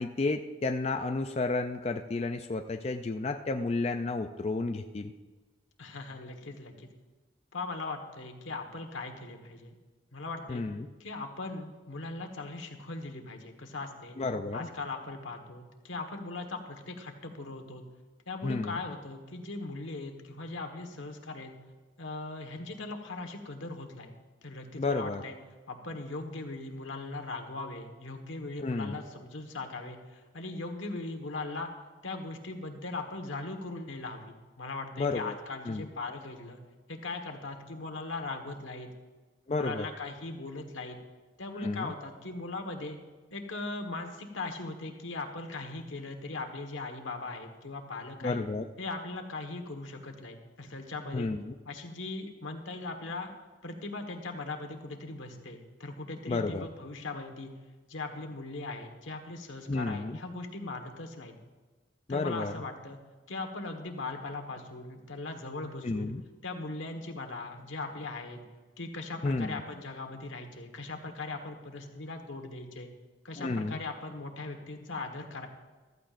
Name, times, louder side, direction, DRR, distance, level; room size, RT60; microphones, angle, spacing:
voice 1, 0.0-5.1 10.5-10.9 14.2-14.7 18.4-18.8 24.8-25.2 28.6-29.0 35.0-35.4 35.7-35.8 39.5-39.9 41.6-41.9 48.2-48.7 51.1-51.5 56.3-56.7 59.7-60.2 62.1-62.5 65.8-66.2 69.2-69.6 73.4-73.8, left 3 dB, 30° left, 6 dB, 0.4 m, -31 dB
voice 2, 5.8-6.9 7.5-9.8 10.1-10.6 11.0-14.2 14.5-17.8 18.3-21.5 22.0-24.1 24.4-25.4 25.7-31.7 32.0-36.6 36.9-38.9 39.5-41.0 41.4-43.0 43.3-48.4 48.8-51.3 51.6-53.3 53.6-57.5 57.9-61.3 62.1-63.0 63.3-66.1 66.4-68.4 68.8-72.9 73.2-75.5, left 3 dB, 85° left, 5 dB, 1.4 m, -39 dB
14.5 x 13.5 x 2.5 m, 1.3 s
head